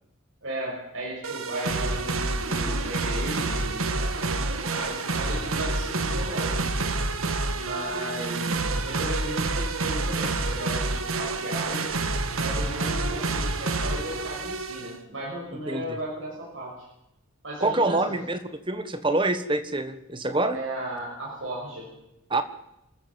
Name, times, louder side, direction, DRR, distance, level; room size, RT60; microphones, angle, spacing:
voice 1, 0.4-6.6 7.5-11.9 12.4-16.7 17.4-18.2 20.5-21.9, right 1 dB, 65° right, -3 dB, 6.4 m, -35 dB
sound 1, 1.2-15.0, right 3 dB, 85° right, 1.7 m, -28 dB
voice 2, 17.6-18.4 18.7-20.6 22.3-22.4, right 2 dB, 25° right, 10 dB, 1.4 m, -25 dB
27.5 x 14.0 x 7.7 m, 0.87 s
head